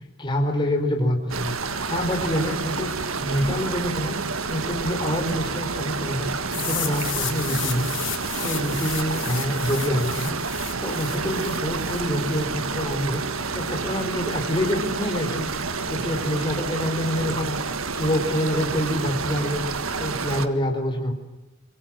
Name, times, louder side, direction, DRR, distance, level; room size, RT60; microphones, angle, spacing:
voice 1, 0.2-2.9 3.2-4.2 4.5-7.9 8.4-15.5 15.9-17.6 17.9-19.6 20.0-21.1, equal, 20° left, 2 dB, 4.3 m, -26 dB
sound 1, 1.3-20.5, right 4 dB, 75° right, 1.7 m, -29 dB
sound 2, 6.5-12.4, left 13 dB, 60° left, 4.6 m, -33 dB
26.0 x 23.0 x 7.7 m, 1.0 s
head